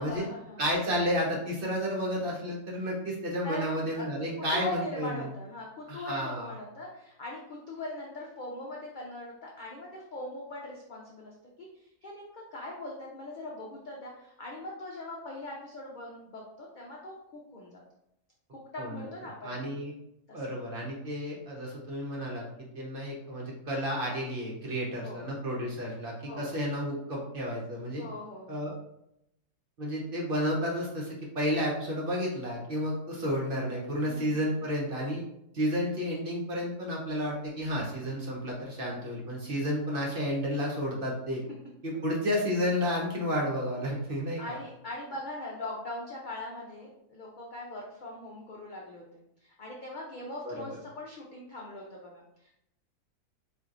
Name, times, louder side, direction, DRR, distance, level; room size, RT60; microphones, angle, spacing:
voice 1, 0.0-0.6 3.4-3.7 4.0-4.3 4.5-17.8 18.5-19.8 20.3-20.4 25.0-25.2 26.2-26.5 28.0-28.6 34.0-34.6 44.4-52.6, left 2 dB, 85° left, -2 dB, 0.4 m, -41 dB
voice 2, 0.6-5.3 5.9-6.5 18.8-19.1 19.4-19.9 20.3-28.0 28.5-28.7 29.8-35.2 35.5-41.4 41.8-44.6 50.4-50.6, equal, 45° right, -2 dB, 0.8 m, -31 dB
4.3 x 2.6 x 2.5 m, 0.81 s
omnidirectional pair, 1.6 m